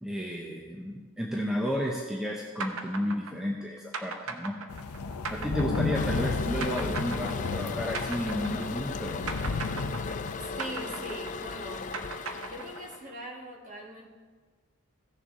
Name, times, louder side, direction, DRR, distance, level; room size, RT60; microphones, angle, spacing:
voice 1, 0.0-4.6 5.3-9.3, equal, 5° right, -2 dB, 0.7 m, -32 dB
sound 1, 2.6-9.0 9.3-13.1, right 4 dB, 70° right, 0.8 m, -38 dB
sound 2, 4.7-10.4, left 4 dB, 90° left, 0.6 m, -33 dB
Toilet flush, 5.9-13.0, left 4 dB, 35° left, 0.4 m, -37 dB
voice 2, 10.4-11.8 12.4-14.1, equal, 35° right, -1 dB, 1.6 m, -41 dB
16.0 x 6.7 x 3.7 m, 1.4 s
head